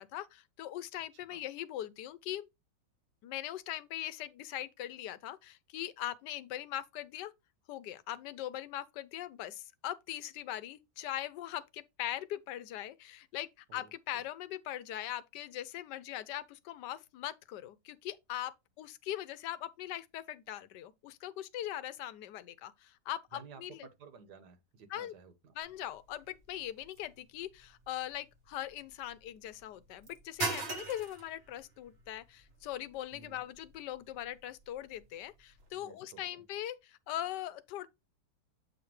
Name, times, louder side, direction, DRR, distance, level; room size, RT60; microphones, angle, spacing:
voice 1, 0.0-2.5 3.2-7.3 7.7-23.9 24.9-25.1 25.5-37.9, left 12 dB, 80° left, 1.2 m, -41 dB
voice 2, 13.7-14.2 23.3-25.5 33.1-33.4 35.7-36.4, right 5 dB, 75° right, 1.7 m, -55 dB
sound 1, 25.6-35.7, right 3 dB, 45° right, 1.0 m, -44 dB
7.9 x 5.0 x 3.1 m
omnidirectional pair, 1.8 m